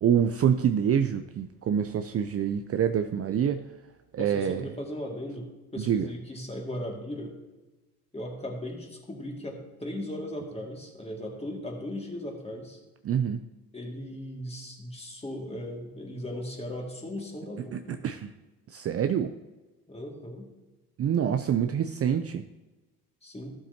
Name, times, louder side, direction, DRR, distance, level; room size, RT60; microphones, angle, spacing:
voice 1, 0.0-3.6 4.1-4.6 5.8-6.1 13.0-13.4 17.7-18.3 18.7-19.3 21.0-22.5, right 8 dB, 35° right, 8 dB, 0.5 m, -26 dB
voice 2, 4.2-7.4 8.1-12.8 13.7-18.0 19.9-20.5 23.2-23.5, left 1 dB, 15° left, 0 dB, 2.2 m, -37 dB
12.5 x 7.3 x 2.9 m, 1.2 s
supercardioid pair, 80°, 39 cm